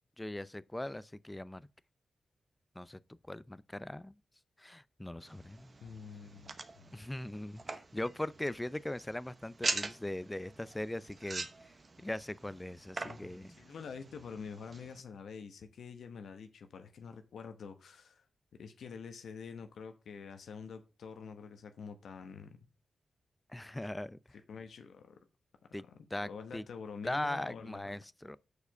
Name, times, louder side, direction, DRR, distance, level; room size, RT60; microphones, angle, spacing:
voice 1, 0.2-1.7 2.8-3.0 3.3-4.2 4.6-5.7 6.9-11.5 12.0-13.5 23.5-24.2 25.7-25.8 26.1-26.6 27.0-28.4, left 1 dB, 15° left, 0.5 m, -40 dB
sound 1, 5.2-15.0, right 3 dB, 45° right, 0.9 m, -43 dB
voice 2, 5.8-6.9 13.0-18.2 18.6-22.6 24.3-25.2 25.9-27.9, left 6 dB, 85° left, 0.9 m, -47 dB
6.7 x 4.8 x 6.6 m
cardioid pair, 50°, 0 cm